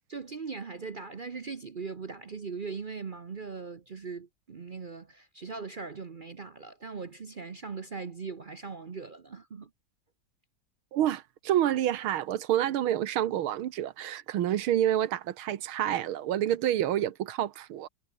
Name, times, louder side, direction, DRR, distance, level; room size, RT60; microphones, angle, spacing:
voice 1, 0.0-9.7, right 5 dB, 55° right, 0.5 m, -40 dB
voice 2, 10.9-17.9, right 11 dB, 85° right, 1.9 m, -28 dB
omnidirectional pair, 2.2 m